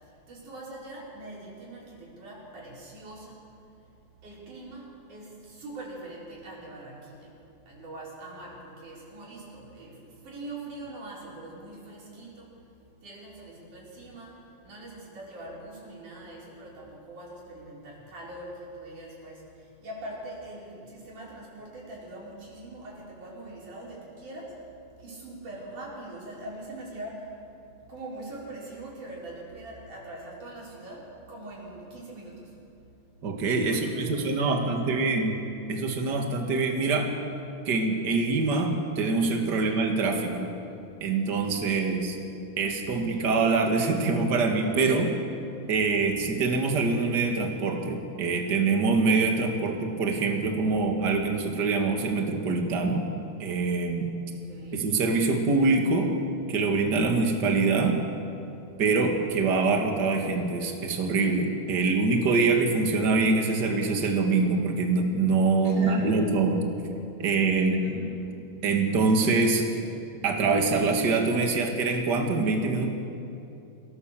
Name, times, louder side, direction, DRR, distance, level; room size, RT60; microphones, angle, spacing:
voice 1, 0.3-3.4 4.2-7.4 7.7-12.6 13.0-24.5 25.0-27.3 27.6-32.6 33.7-35.1 39.6-39.8 41.6-42.2 54.3-54.9 65.6-66.2 67.2-68.4, right 2 dB, 55° right, -5 dB, 6.3 m, -43 dB
voice 2, 33.2-35.3 35.7-37.1 37.7-40.5 41.0-42.2 42.6-45.1 45.7-53.0 53.4-54.1 54.7-56.1 56.5-58.0 58.8-66.7 67.2-67.8 68.6-69.6 70.2-72.9, right 3 dB, 35° right, 2 dB, 2.0 m, -24 dB
24.5 x 17.5 x 7.5 m, 2.7 s
omnidirectional pair, 4.2 m